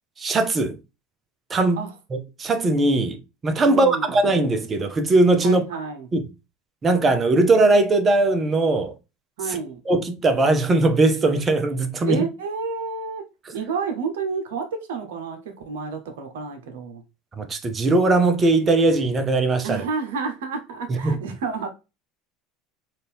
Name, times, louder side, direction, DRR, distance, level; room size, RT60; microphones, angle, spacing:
voice 1, 0.2-0.8 1.5-1.8 2.1-3.2 3.4-5.6 6.1-6.2 6.8-8.9 9.9-12.2 17.4-19.8 20.9-21.2, right 2 dB, 30° right, 0.8 m, -19 dB
voice 2, 3.7-4.1 5.4-6.1 9.4-9.8 12.1-13.2 13.5-17.0 19.6-21.7, right 5 dB, 75° right, 0.9 m, -30 dB
4.1 x 2.6 x 3.5 m
hypercardioid pair, 85°, 0 cm